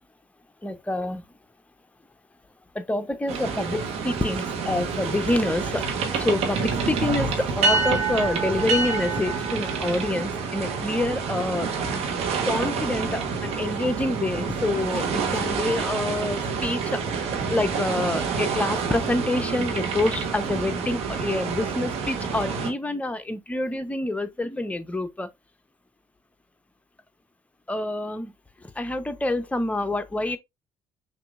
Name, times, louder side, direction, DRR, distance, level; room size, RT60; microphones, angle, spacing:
voice 1, 0.6-1.2 2.7-5.9 6.2-11.7 12.5-17.0 17.5-25.3 27.7-28.3 28.8-30.4, left 2 dB, 10° left, 0.7 m, -27 dB
sound 1, 3.3-22.7, right 5 dB, 60° right, 1.1 m, -27 dB
5.8 x 2.7 x 2.4 m
hypercardioid pair, 55°, 12 cm